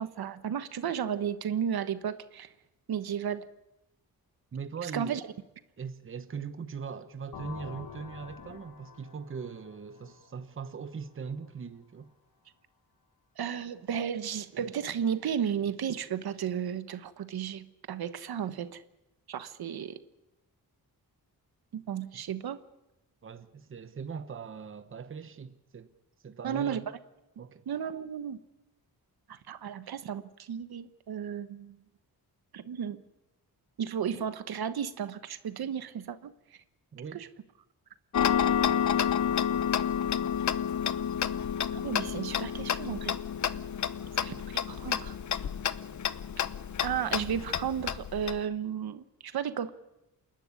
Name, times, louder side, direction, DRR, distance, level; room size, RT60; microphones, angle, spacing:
voice 1, 0.0-2.5 2.9-3.5 4.8-5.2 13.4-18.8 19.3-20.0 21.7-22.6 26.4-27.0 27.7-28.4 29.3-31.8 32.5-33.0 33.8-36.3 37.1-37.3 41.7-43.2 44.2-45.2 46.8-49.7, right 8 dB, 75° right, 1.2 m, -34 dB
voice 2, 4.5-5.2 5.8-12.1 23.2-25.9 26.2-26.9 27.4-27.6 36.9-37.3, right 6 dB, 35° right, 1.0 m, -40 dB
sound 1, 7.3-11.0, left 6 dB, 65° left, 1.7 m, -47 dB
Tick-tock, 38.1-48.4, left 8 dB, 50° left, 0.8 m, -30 dB
28.0 x 11.5 x 9.7 m
wide cardioid pair, 145°, 37 cm